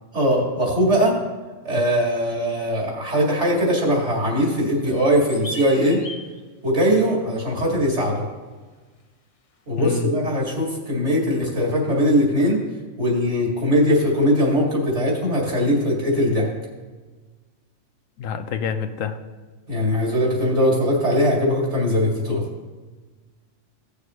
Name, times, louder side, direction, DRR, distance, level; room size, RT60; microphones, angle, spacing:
voice 1, 0.1-1.2 1.6-6.0 6.6-8.2 9.7-12.6 13.0-16.5 19.7-22.4, equal, 60° right, -3 dB, 2.8 m, -20 dB
sound 1, 4.6-6.4, left 1 dB, 35° left, 0.7 m, -37 dB
voice 2, 9.8-10.1 18.2-19.2, left 6 dB, 85° left, 8 dB, 1.1 m, -26 dB
16.5 x 6.6 x 3.2 m, 1.3 s
omnidirectional pair, 1.3 m